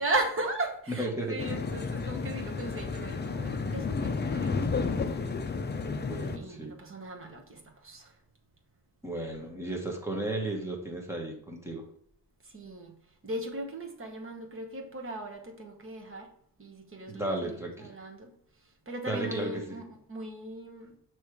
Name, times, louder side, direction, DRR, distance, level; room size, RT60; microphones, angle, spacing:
voice 1, 0.0-4.8 5.0-5.3 6.3-8.2 12.4-13.0 13.2-16.3 16.6-18.3 18.6-21.0, right 2 dB, 35° right, 2 dB, 1.1 m, -37 dB
voice 2, 1.0-1.4 6.0-6.8 9.0-11.8 17.1-17.9 19.1-19.6, right 2 dB, 5° right, 0 dB, 1.2 m, -34 dB
sound 1, 1.4-6.4, left 4 dB, 30° left, 0.4 m, -32 dB
6.7 x 3.1 x 4.6 m, 0.66 s
wide cardioid pair, 165°, 39 cm